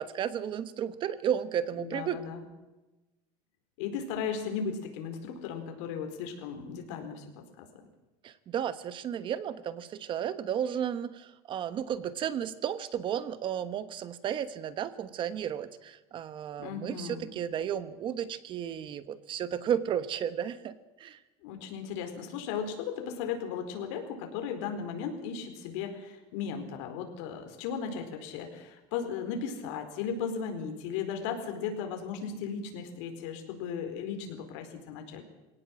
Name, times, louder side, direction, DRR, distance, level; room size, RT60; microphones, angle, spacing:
voice 1, 0.0-2.2 8.2-21.2, right 9 dB, 35° right, 13 dB, 1.2 m, -33 dB
voice 2, 1.8-2.5 3.8-7.3 7.6-7.7 16.6-17.3 21.4-35.2, left 6 dB, 80° left, 5 dB, 4.5 m, -36 dB
23.0 x 18.0 x 7.7 m, 1.1 s
cardioid pair, 160°, 15 cm